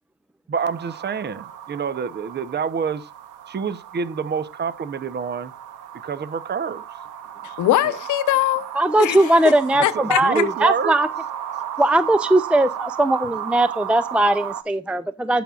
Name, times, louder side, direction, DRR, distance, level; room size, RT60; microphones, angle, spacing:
voice 1, 0.5-3.1 3.5-5.5 6.0-6.8 7.8-7.9 9.9-10.9, right 6 dB, 35° right, 0.8 m, -27 dB
sound 1, 0.6-14.6, right 10 dB, 90° right, 1.0 m, -34 dB
voice 2, 7.4-8.7 9.0-9.2 9.8-10.5, left 14 dB, 80° left, 0.9 m, -21 dB
voice 3, 8.7-11.1 11.8-15.4, right 1 dB, 5° right, 0.4 m, -19 dB
16.0 x 6.1 x 2.4 m
cardioid pair, 90°, 30 cm